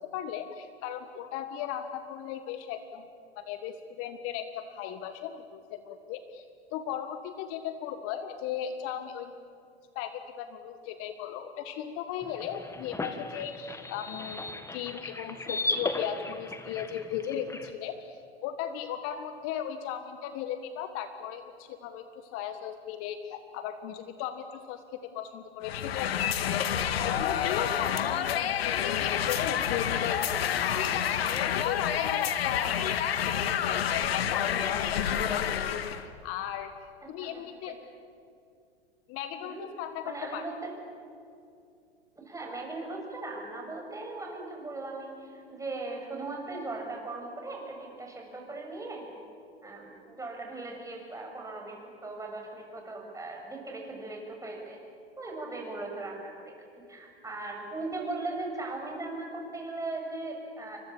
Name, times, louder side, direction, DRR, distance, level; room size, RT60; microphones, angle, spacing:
voice 1, 0.1-3.1 3.4-6.5 6.7-9.3 10.0-30.2 30.6-35.6 36.2-36.7 37.1-37.8 39.1-40.4, left 9 dB, 45° left, 9 dB, 1.6 m, -37 dB
sound 1, 12.2-17.7, left 2 dB, 10° left, 2.0 m, -36 dB
sound 2, 25.6-36.0, left 9 dB, 70° left, 1.8 m, -29 dB
voice 2, 40.0-40.7 42.2-49.1 49.6-54.8 55.2-56.5 56.9-60.8, right 2 dB, 10° right, 1 dB, 6.9 m, -38 dB
29.0 x 25.0 x 7.4 m, 2.5 s
hypercardioid pair, 100°, 32 cm